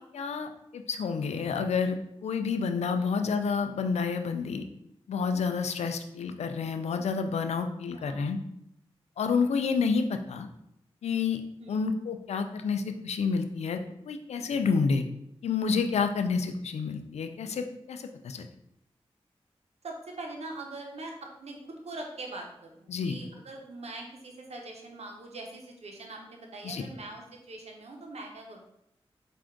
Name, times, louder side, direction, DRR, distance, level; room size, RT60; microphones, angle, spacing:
voice 1, 0.1-4.6 5.1-8.4 9.2-10.5 11.0-11.4 11.7-13.8 14.1-15.0 15.4-18.5 22.9-23.2 26.6-26.8, left 5 dB, 85° left, 7 dB, 0.4 m, -29 dB
voice 2, 7.9-8.3 11.6-11.9 19.8-28.6, right 2 dB, 75° right, 1 dB, 0.9 m, -42 dB
4.4 x 2.5 x 3.7 m, 0.77 s
cardioid pair, 40°, 11 cm